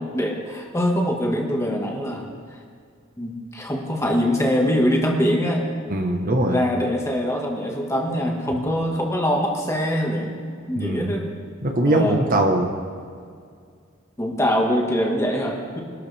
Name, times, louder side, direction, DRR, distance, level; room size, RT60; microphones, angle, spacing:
voice 1, 0.0-2.3 3.2-5.6 6.5-11.4 11.8-12.2 14.2-15.8, equal, 15° left, 0 dB, 1.7 m, -23 dB
voice 2, 5.9-6.6 10.8-11.1 11.6-12.7, right 1 dB, 40° right, 3 dB, 1.2 m, -21 dB
24.0 x 12.5 x 3.4 m, 2.2 s
head